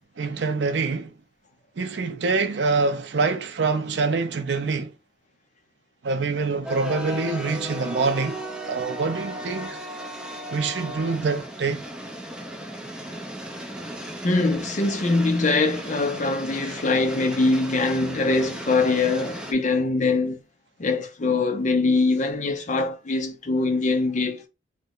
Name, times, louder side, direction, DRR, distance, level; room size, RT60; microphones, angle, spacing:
voice 1, 0.2-1.1 1.8-4.9 6.0-9.8 10.5-11.8 16.6-16.8, right 4 dB, 75° right, 0.5 m, -25 dB
sound 1, 6.6-19.5, equal, 5° right, 0.5 m, -35 dB
voice 2, 14.2-20.4 20.8-24.5, left 3 dB, 45° left, 0.6 m, -23 dB
3.2 x 2.1 x 3.7 m
head